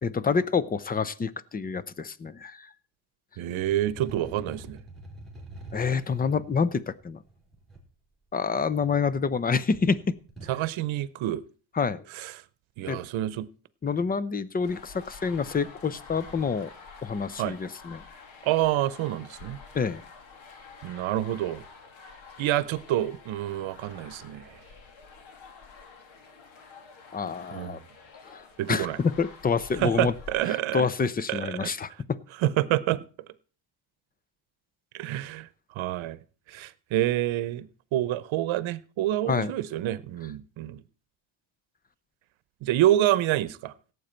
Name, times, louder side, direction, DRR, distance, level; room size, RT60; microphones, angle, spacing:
voice 1, 0.0-2.7 5.7-7.2 8.3-10.1 11.7-12.1 12.9-13.0 13.8-16.7 17.0-18.0 19.7-20.0 27.1-27.8 28.3-30.1 30.5-32.2 39.3-39.5, left 5 dB, 20° left, 0.5 m, -27 dB
voice 2, 3.4-4.8 10.5-11.4 12.2-12.3 12.8-13.5 17.4-17.5 18.4-19.6 20.8-21.6 22.4-24.4 27.5-27.7 28.6-29.0 29.8-30.9 31.3-31.7 32.4-33.0 34.9-35.5 35.8-36.2 36.5-37.7 37.9-40.8 42.6-43.7, right 13 dB, 70° right, 0.9 m, -27 dB
sound 1, 3.6-7.8 8.6-9.3 9.6-10.6, right 2 dB, ahead, 4.0 m, -45 dB
sound 2, 14.6-30.4, left 5 dB, 70° left, 2.4 m, -48 dB
17.0 x 8.2 x 4.4 m
cardioid pair, 135°, 48 cm